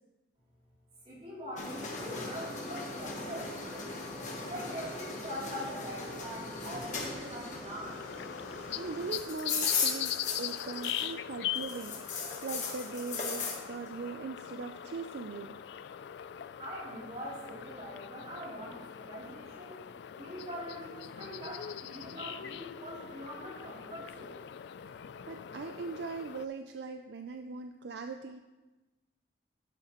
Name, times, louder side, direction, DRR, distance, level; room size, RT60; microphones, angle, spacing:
voice 1, 1.0-3.9 4.5-8.0 16.6-24.4, equal, 35° right, -6 dB, 3.2 m, -43 dB
sound 1, 1.6-11.2 11.5-13.6, left 4 dB, 40° left, 1.3 m, -37 dB
sound 2, 7.8-26.5, left 10 dB, 70° left, 0.3 m, -41 dB
voice 2, 8.8-15.5 25.3-28.4, right 4 dB, 65° right, 6 dB, 0.4 m, -40 dB
11.5 x 7.7 x 3.0 m, 1.1 s
head